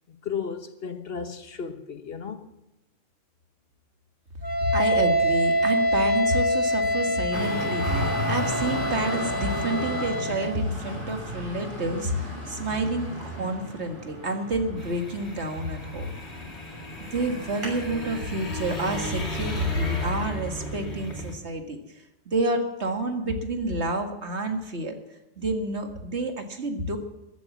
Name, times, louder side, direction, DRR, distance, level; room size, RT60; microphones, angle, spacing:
voice 1, 0.1-2.5, left 6 dB, 65° left, 1.5 m, -34 dB
Wind instrument woodwind instrument, 4.4-10.6, equal, 20° left, 1.7 m, -25 dB
voice 2, 4.6-16.1 17.1-21.8 22.3-24.9 25.4-27.0, right 1 dB, 85° right, 2.2 m, -29 dB
Traffic noise roadway noise, 7.3-19.1, equal, 50° right, 6.8 m, -35 dB
sound 1, 14.8-21.4, equal, 80° left, 2.9 m, -35 dB
15.0 x 11.0 x 7.3 m
omnidirectional pair, 1.1 m